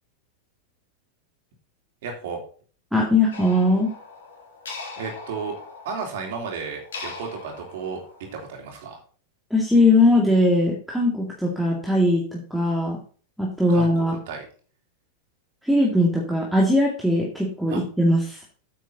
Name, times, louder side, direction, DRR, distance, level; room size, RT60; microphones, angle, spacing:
voice 1, 2.0-2.4 5.0-5.5 5.8-9.0 13.7-14.5 17.7-17.8, right 5 dB, 55° right, 2 dB, 2.9 m, -33 dB
voice 2, 2.9-3.9 9.5-13.0 13.4-14.1 15.6-18.4, left 1 dB, ahead, -2 dB, 2.3 m, -20 dB
sound 1, 3.3-8.5, left 4 dB, 65° left, 3.8 m, -40 dB
9.1 x 7.7 x 3.9 m, 0.41 s
figure-of-eight pair, 90°, 0 cm